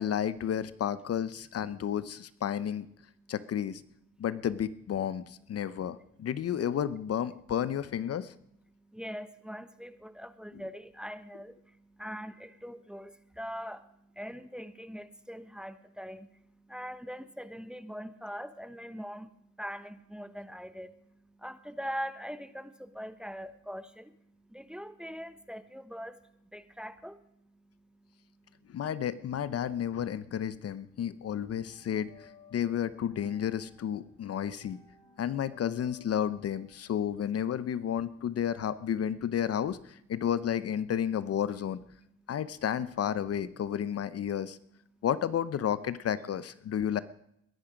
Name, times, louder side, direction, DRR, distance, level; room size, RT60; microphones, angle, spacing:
voice 1, 0.0-2.9 3.3-3.8 4.2-8.3 28.7-34.8 35.2-41.8 42.3-44.6 45.0-47.0, left 9 dB, 55° left, 16 dB, 0.8 m, -32 dB
voice 2, 8.7-28.8 30.6-30.7 42.2-42.3 44.9-45.0, equal, 5° right, 12 dB, 1.0 m, -43 dB
sound 1, 30.3-30.8 31.1-39.0, left 6 dB, 70° left, 6.9 m, -60 dB
21.5 x 10.5 x 5.1 m, 0.74 s
cardioid pair, 90°, 30 cm